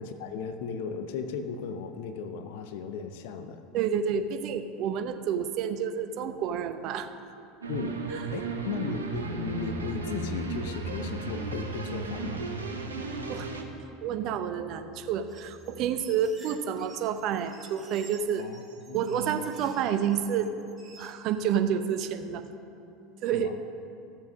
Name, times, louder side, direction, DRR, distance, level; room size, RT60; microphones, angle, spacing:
voice 1, 0.0-3.6 7.7-8.0 8.3-12.4 18.4-18.6 18.9-19.4 23.3-23.5, left 6 dB, 65° left, 8 dB, 0.8 m, -36 dB
voice 2, 3.7-7.1 8.1-8.2 13.3-13.5 14.0-18.5 18.9-20.5 21.0-22.4 23.2-23.5, right 8 dB, 55° right, 8 dB, 0.9 m, -29 dB
sound 1, 7.6-13.6, right 5 dB, 90° right, 1.2 m, -35 dB
Bass guitar, 9.1-15.4, left 3 dB, 85° left, 2.9 m, -43 dB
sound 2, 15.2-21.1, right 4 dB, 20° right, 2.5 m, -52 dB
15.0 x 7.4 x 6.4 m, 2.6 s
hypercardioid pair, 80°, 0 cm